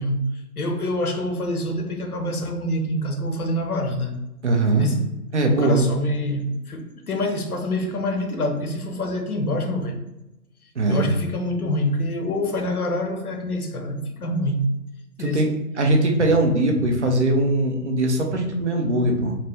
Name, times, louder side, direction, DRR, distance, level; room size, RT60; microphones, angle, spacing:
voice 1, 0.0-4.1 4.7-5.1 5.6-10.0 10.9-14.7 15.2-15.4, left 1 dB, 70° left, 0.8 m, -26 dB
voice 2, 4.4-4.9 5.3-5.8 10.8-11.1 15.2-15.5 15.8-19.4, right 2 dB, 50° right, 0.7 m, -20 dB
3.4 x 2.5 x 3.4 m
figure-of-eight pair, 135°, 46 cm